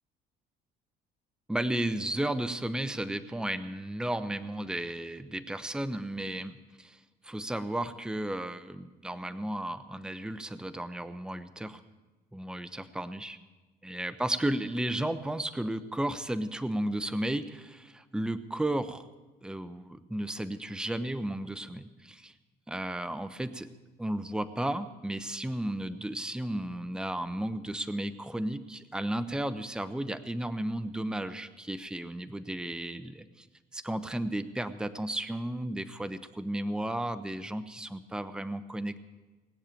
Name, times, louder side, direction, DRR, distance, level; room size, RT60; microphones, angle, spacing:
voice 1, 1.5-7.0 7.2-11.8 12.3-13.4 13.8-19.0 19.4-22.3 22.7-23.7 24.0-33.5 33.7-39.0, right 1 dB, 5° right, 12 dB, 0.7 m, -34 dB
19.5 x 6.7 x 9.0 m, 1.2 s
cardioid pair, 110°, 17 cm